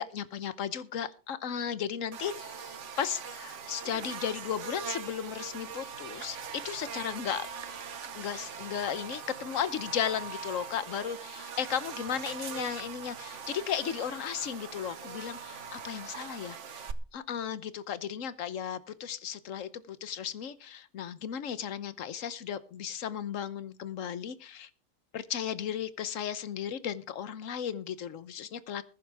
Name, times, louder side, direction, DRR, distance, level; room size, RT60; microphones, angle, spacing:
voice 1, 0.0-7.5 8.1-16.8 17.1-24.7 25.1-28.8, left 8 dB, 70° left, 1.3 m, -35 dB
Buzz, 2.1-16.9, right 6 dB, 60° right, 1.3 m, -42 dB
20.5 x 11.0 x 3.5 m
omnidirectional pair, 1.4 m